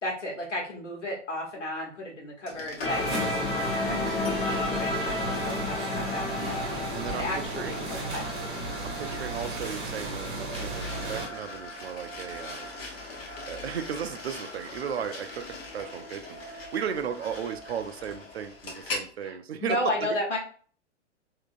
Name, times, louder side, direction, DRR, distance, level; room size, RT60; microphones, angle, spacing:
voice 1, 0.0-3.4 3.8-6.8 7.1-8.3 19.2-20.4, left 1 dB, 75° left, -1 dB, 1.4 m, -34 dB
sound 1, 2.5-19.1, left 1 dB, 55° left, 1.1 m, -41 dB
sound 2, 2.8-9.6, left 2 dB, 15° left, 0.7 m, -32 dB
sound 3, 2.9-11.3, right 2 dB, 30° right, 0.9 m, -35 dB
voice 2, 6.9-7.3 7.6-8.0 8.8-13.0 13.5-20.1, right 8 dB, 60° right, 8 dB, 0.5 m, -35 dB
3.5 x 2.8 x 2.5 m, 0.44 s
figure-of-eight pair, 105°, 36 cm